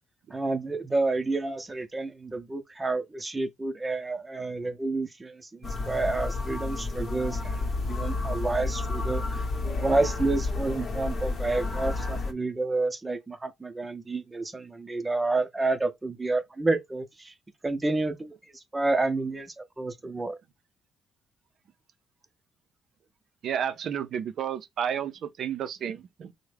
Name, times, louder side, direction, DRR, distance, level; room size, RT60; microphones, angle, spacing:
voice 1, 0.3-9.4 9.8-17.3 17.6-18.3 18.7-20.4, right 2 dB, 20° right, 0.6 m, -29 dB
Cambodian Buddhist Chanting, 5.6-12.3, left 3 dB, 45° left, 0.8 m, -31 dB
voice 2, 23.4-26.3, right 8 dB, 65° right, 0.5 m, -31 dB
3.5 x 2.1 x 3.2 m
cardioid pair, 90°, 0 cm